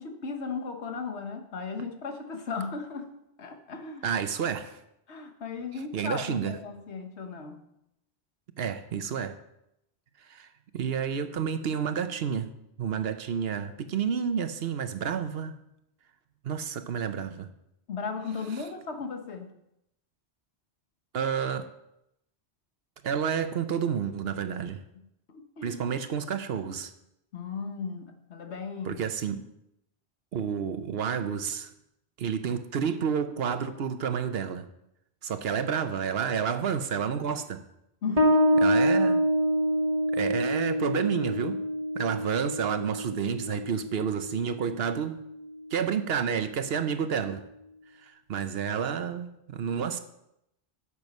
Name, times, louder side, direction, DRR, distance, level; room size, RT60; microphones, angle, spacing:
voice 1, 0.0-3.1 3.4-4.1 5.1-7.6 17.9-19.5 25.3-25.8 27.3-29.0 38.0-38.7, left 4 dB, 75° left, 5 dB, 1.4 m, -36 dB
voice 2, 4.0-4.8 5.9-6.6 8.6-9.3 10.2-10.5 10.7-12.5 12.8-15.6 16.4-17.5 21.1-21.6 23.0-24.8 25.6-26.9 28.8-29.4 30.3-31.7 32.2-34.7 35.2-37.6 38.6-39.2 40.1-41.6 41.9-45.2 45.7-47.4 48.0-50.0, right 7 dB, 65° right, 10 dB, 0.9 m, -30 dB
Bass guitar, 38.2-45.3, equal, 35° right, 1.2 m, -26 dB
9.2 x 7.0 x 5.4 m, 0.82 s
omnidirectional pair, 1.1 m